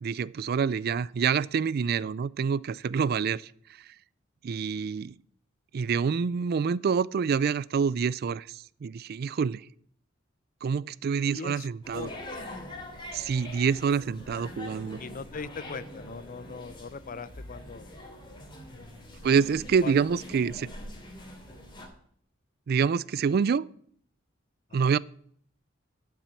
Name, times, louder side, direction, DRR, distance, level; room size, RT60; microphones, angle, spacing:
voice 1, 0.0-3.5 3.8-3.9 4.4-5.1 5.7-9.6 10.6-12.1 13.1-15.0 19.2-20.7 22.7-23.6 24.7-25.0, right 6 dB, 50° right, 0.4 m, -27 dB
voice 2, 11.3-12.4 15.0-17.9 19.8-20.0 24.7-24.9, left 5 dB, 45° left, 0.5 m, -40 dB
sound 1, 11.8-21.9, left 1 dB, 25° left, 2.7 m, -43 dB
12.0 x 6.0 x 8.3 m
head